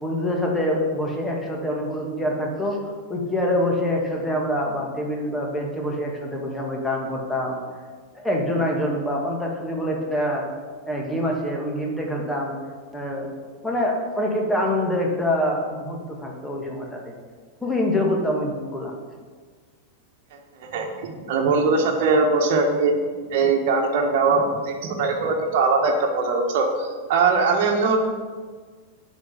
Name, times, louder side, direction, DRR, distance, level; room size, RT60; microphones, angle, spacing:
voice 1, 0.0-2.8 3.1-7.6 8.1-10.5 10.9-12.5 12.9-13.3 13.6-17.1 17.6-18.9, left 1 dB, 10° left, -1 dB, 2.1 m, -25 dB
voice 2, 20.6-23.0 23.3-28.0, right 4 dB, 50° right, 2 dB, 1.6 m, -21 dB
8.4 x 6.0 x 7.6 m, 1.5 s
figure-of-eight pair, 90°, 0 cm